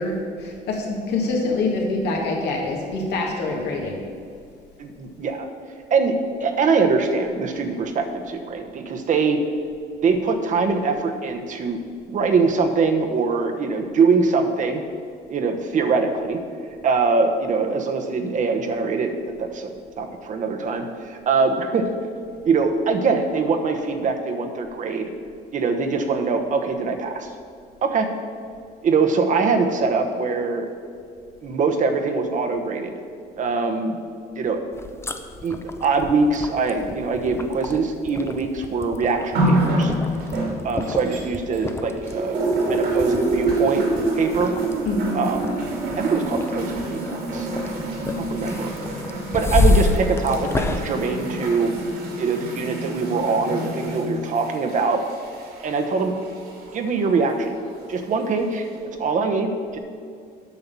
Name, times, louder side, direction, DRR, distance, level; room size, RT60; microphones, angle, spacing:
voice 1, 0.0-4.0 44.8-45.2, left 2 dB, 80° left, -1 dB, 2.1 m, -25 dB
voice 2, 4.8-5.5 5.9-9.4 10.0-11.8 12.1-14.8 15.3-16.4 16.8-19.1 19.4-21.9 22.4-25.1 25.5-27.3 27.8-28.1 28.8-30.7 31.4-32.9 33.4-34.0 34.4-34.6 35.4-39.9 40.6-43.9 44.1-44.5 45.1-45.6 46.0-47.5 48.2-48.7 49.3-51.7 52.2-55.0 55.6-56.1 56.7-57.5 57.9-58.7 59.0-59.8, right 4 dB, 50° right, 5 dB, 1.1 m, -23 dB
sound 1, 34.7-51.9, left 2 dB, 15° left, 0.6 m, -29 dB
sound 2, 39.3-41.7 42.0-56.8 57.6-57.7, right 1 dB, 70° right, 2.5 m, -27 dB
8.5 x 5.7 x 6.9 m, 2.3 s
cardioid pair, 110°, 17 cm